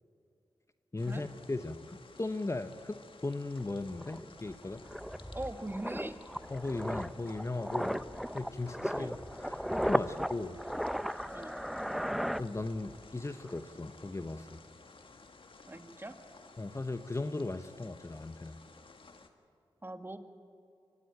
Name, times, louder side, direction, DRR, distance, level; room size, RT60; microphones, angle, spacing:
voice 1, 0.9-4.8 6.5-8.0 8.3-10.6 12.4-14.6 16.6-18.6, left 2 dB, 30° left, 10 dB, 1.0 m, -37 dB
sound 1, 1.0-19.3, left 4 dB, 60° left, 1.9 m, -55 dB
sound 2, 3.6-3.7 4.0-13.1 13.3-13.6, equal, ahead, 0.6 m, -36 dB
voice 2, 5.3-6.2 8.9-9.2 11.3-11.6 15.7-16.1 19.8-20.2, right 1 dB, 20° right, 7 dB, 1.9 m, -41 dB
24.0 x 15.0 x 8.9 m, 2.5 s
cardioid pair, 45°, 10 cm